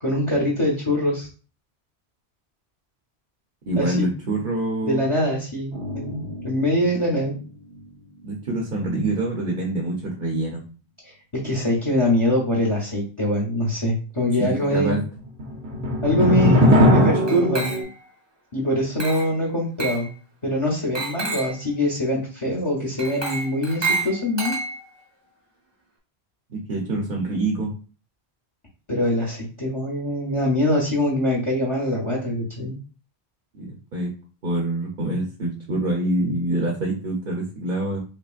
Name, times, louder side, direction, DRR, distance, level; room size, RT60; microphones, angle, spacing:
voice 1, 0.0-1.3 3.8-4.1 4.8-7.3 11.3-15.0 16.0-17.7 18.5-20.1 20.4-24.6 28.9-32.8, left 1 dB, 30° left, -3 dB, 0.9 m, -23 dB
voice 2, 3.7-5.0 8.2-10.6 14.4-15.0 16.2-17.1 26.5-27.7 33.5-34.1 34.4-38.0, right 2 dB, 55° right, -1 dB, 1.0 m, -25 dB
sound 1, 5.7-7.4 7.8-7.9 15.2-17.8, left 1 dB, 75° right, 1.3 m, -21 dB
Glass, 17.3-18.1 19.0-19.4 19.8-20.1 21.0-21.6 23.0-25.0, right 3 dB, 25° right, 0.8 m, -29 dB
5.5 x 2.1 x 2.4 m, 0.37 s
omnidirectional pair, 1.1 m